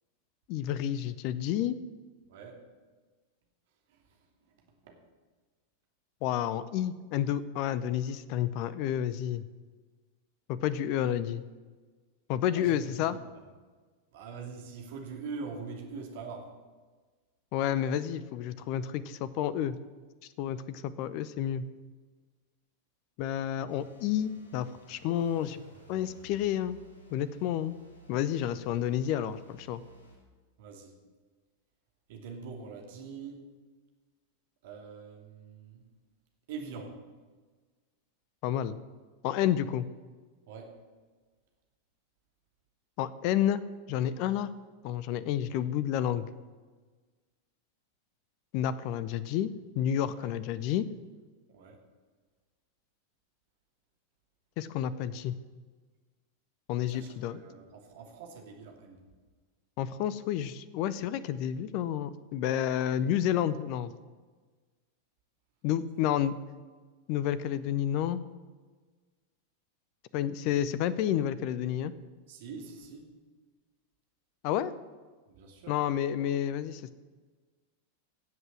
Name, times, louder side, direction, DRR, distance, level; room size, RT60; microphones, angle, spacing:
voice 1, 0.5-1.8 6.2-9.4 10.5-11.4 12.3-13.2 17.5-19.8 20.4-21.6 23.2-25.6 25.9-26.8 27.1-27.7 28.1-29.8 38.4-38.8 39.2-39.9 43.0-43.6 43.9-44.5 44.8-46.3 48.5-50.9 54.6-55.3 56.7-57.4 59.8-63.9 65.6-66.3 67.1-68.2 70.1-71.9 74.4-74.7 75.7-76.9, left 10 dB, 45° left, 16 dB, 0.6 m, -30 dB
voice 2, 2.3-2.7 3.9-4.6 4.8-5.0 12.5-13.4 14.1-16.6 30.6-31.0 32.1-33.5 34.6-35.8 36.5-37.0 40.5-40.8 50.1-50.4 51.5-51.8 56.9-59.0 72.3-73.1 75.3-75.8, right 5 dB, 55° right, 2 dB, 3.0 m, -44 dB
sound 1, 23.7-30.2, right 1 dB, 80° left, 5.5 m, -55 dB
16.5 x 8.0 x 7.7 m, 1.4 s
figure-of-eight pair, 90°, 0 cm